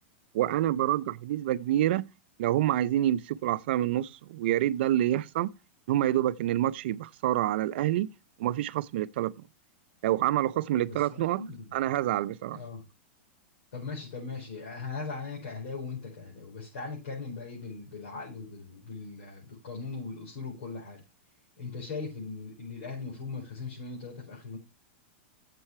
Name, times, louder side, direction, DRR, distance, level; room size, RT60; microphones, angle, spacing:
voice 1, 0.3-2.1 2.4-5.5 5.9-8.1 8.4-9.3 10.0-11.4 11.7-12.6, right 13 dB, 60° right, 0.6 m, -27 dB
voice 2, 10.9-11.9 12.5-12.8 13.7-21.0 21.6-24.6, left 4 dB, 70° left, 5.1 m, -39 dB
8.7 x 7.6 x 4.7 m
supercardioid pair, 155°, 6 cm